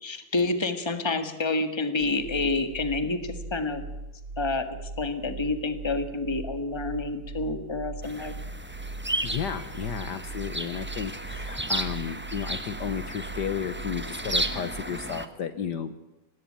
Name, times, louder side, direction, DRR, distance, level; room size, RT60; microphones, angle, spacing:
voice 1, 0.0-3.8 4.4-4.7 5.0-8.3, left 3 dB, 15° left, 8 dB, 1.6 m, -28 dB
sound 1, 2.0-14.8, right 2 dB, 55° right, 3.6 m, -40 dB
sound 2, 8.0-15.3, right 1 dB, 10° right, 0.8 m, -34 dB
voice 2, 9.2-15.9, left 8 dB, 60° left, 11 dB, 1.5 m, -33 dB
18.5 x 17.0 x 8.7 m, 0.99 s
omnidirectional pair, 2.2 m